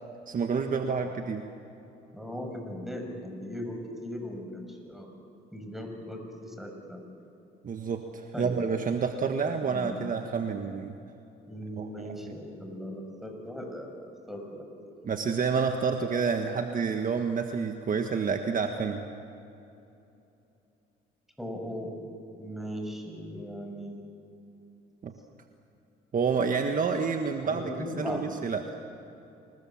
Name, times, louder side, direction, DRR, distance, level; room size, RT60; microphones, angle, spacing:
voice 1, 0.3-1.4 7.6-10.9 11.8-12.4 15.0-19.1 25.0-25.1 26.1-27.6 28.0-28.8, right 5 dB, 45° right, 5 dB, 1.5 m, -29 dB
voice 2, 2.1-5.1 5.5-7.0 8.3-8.6 9.6-10.0 11.5-15.0 21.4-22.1 22.4-24.0 27.4-28.2, equal, ahead, 3 dB, 6.3 m, -38 dB
27.0 x 20.5 x 7.4 m, 2.8 s
supercardioid pair, 80°, 20 cm